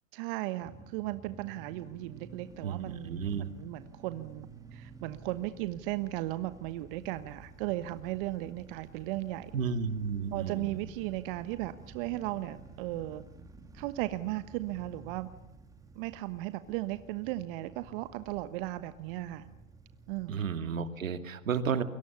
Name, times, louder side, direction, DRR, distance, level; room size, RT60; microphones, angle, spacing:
voice 1, 0.1-9.5 10.3-13.2 13.7-15.3 15.9-19.5 20.1-20.4, right 16 dB, 40° right, 12 dB, 1.2 m, -36 dB
sound 1, 0.6-20.5, right 3 dB, 10° right, 2.3 m, -52 dB
voice 2, 2.6-3.5 9.5-10.8 20.3-21.8, right 6 dB, 75° right, 9 dB, 2.4 m, -32 dB
29.0 x 23.0 x 7.1 m, 0.85 s
hypercardioid pair, 115°, 40 cm